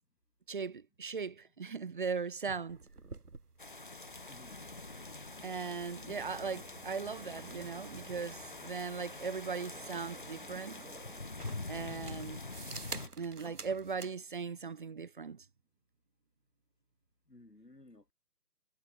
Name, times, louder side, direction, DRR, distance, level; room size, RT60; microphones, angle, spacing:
voice 1, 0.5-2.8 5.4-10.8 11.7-12.4 13.2-15.5, right 5 dB, 30° right, 1.7 m, -38 dB
sound 1, 2.7-14.2, right 3 dB, 70° right, 2.6 m, -51 dB
sound 2, 3.6-13.1, left 3 dB, 30° left, 0.7 m, -45 dB
voice 2, 4.3-4.7 17.3-18.1, left 2 dB, 75° left, 7.5 m, -57 dB
figure-of-eight pair, 150°, 48 cm